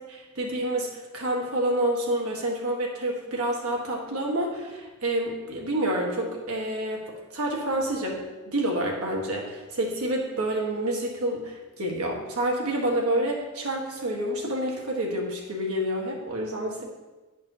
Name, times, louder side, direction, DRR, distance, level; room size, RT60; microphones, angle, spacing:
voice 1, 0.1-7.0 7.3-8.2 8.5-16.8, right 1 dB, 80° right, -1 dB, 1.4 m, -28 dB
10.0 x 5.3 x 2.8 m, 1.2 s
head